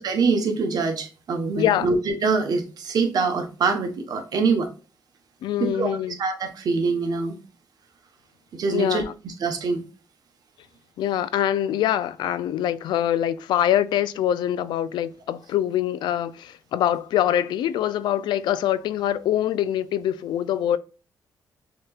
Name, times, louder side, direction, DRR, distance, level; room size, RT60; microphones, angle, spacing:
voice 1, 0.0-4.7 5.6-5.9 6.2-7.4 8.6-9.8, right 4 dB, 60° right, 1.0 m, -24 dB
voice 2, 1.6-1.9 5.4-6.2 8.7-9.1 11.0-20.8, left 11 dB, 85° left, 0.3 m, -24 dB
6.3 x 3.0 x 2.4 m
cardioid pair, 105°, 7 cm